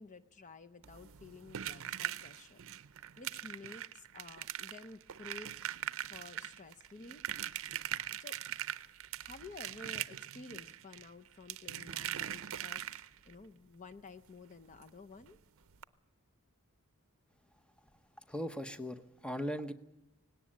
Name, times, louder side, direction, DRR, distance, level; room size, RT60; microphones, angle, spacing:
voice 1, 0.0-2.6 3.0-5.5 6.1-7.2 7.5-8.4 9.2-12.8 13.3-15.4, left 3 dB, 35° left, 9 dB, 0.7 m, -52 dB
sound 1, 0.8-13.3 14.8-14.9 15.2-15.3 15.7-15.8, right 11 dB, 60° right, 0.6 m, -41 dB
voice 2, 18.3-19.7, equal, 5° left, 10 dB, 0.8 m, -38 dB
18.5 x 17.5 x 8.7 m, 0.97 s
head